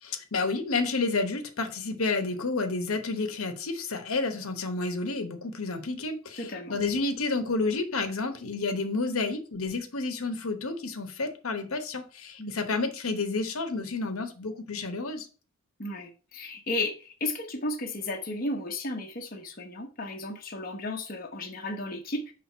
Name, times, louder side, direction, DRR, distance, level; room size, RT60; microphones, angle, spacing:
voice 1, 0.0-15.3, left 3 dB, 90° left, 1.0 m, -30 dB
voice 2, 6.4-6.8 12.4-12.6 15.8-22.3, left 2 dB, 45° left, 1.0 m, -34 dB
6.1 x 3.4 x 5.4 m
head